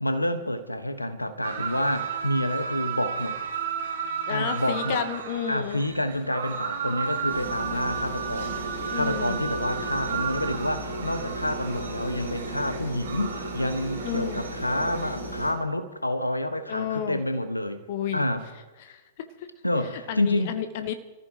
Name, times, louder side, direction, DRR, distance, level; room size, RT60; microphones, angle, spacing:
voice 1, 0.0-3.3 4.3-5.0 5.5-8.6 8.9-17.8 18.1-18.5 19.6-20.6, left 1 dB, 85° left, 10 dB, 1.2 m, -28 dB
sound 1, 1.4-15.2, right 7 dB, 60° right, 1.9 m, -34 dB
voice 2, 4.3-5.8 8.9-9.4 14.0-14.4 16.7-17.2 17.9-18.3 18.8-19.3 20.1-20.9, left 9 dB, 45° left, 10 dB, 1.0 m, -31 dB
sound 2, 7.3-15.5, right 1 dB, 85° right, 4.4 m, -35 dB
29.0 x 14.5 x 3.0 m, 1.2 s
figure-of-eight pair, 105°, 0 cm